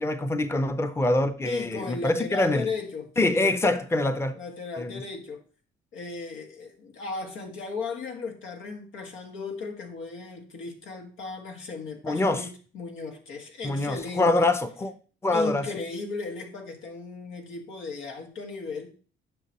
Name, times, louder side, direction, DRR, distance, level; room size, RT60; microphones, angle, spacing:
voice 1, 0.0-2.7 3.2-4.4 4.8-5.0 12.0-12.5 13.6-14.9 15.2-15.7, left 2 dB, 15° left, 0.7 m, -25 dB
voice 2, 1.4-3.5 4.3-5.4 5.9-14.5 15.3-18.9, left 4 dB, 90° left, 1.7 m, -36 dB
9.6 x 5.9 x 3.0 m
cardioid pair, 90°, 20 cm